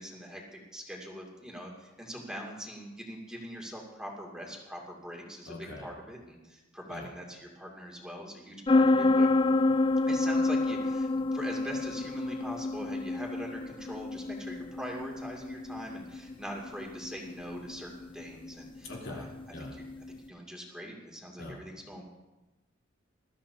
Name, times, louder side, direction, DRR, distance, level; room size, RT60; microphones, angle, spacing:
voice 1, 0.0-9.3 10.1-19.3 19.6-19.8 20.2-22.0, equal, 5° right, -2 dB, 2.5 m, -43 dB
voice 2, 5.5-5.9 6.9-7.1 18.8-19.7 21.4-21.6, left 2 dB, 85° left, -3 dB, 3.8 m, -42 dB
sound 1, 8.7-20.2, left 2 dB, 25° left, 0.5 m, -29 dB
21.0 x 13.5 x 2.8 m, 1.1 s
head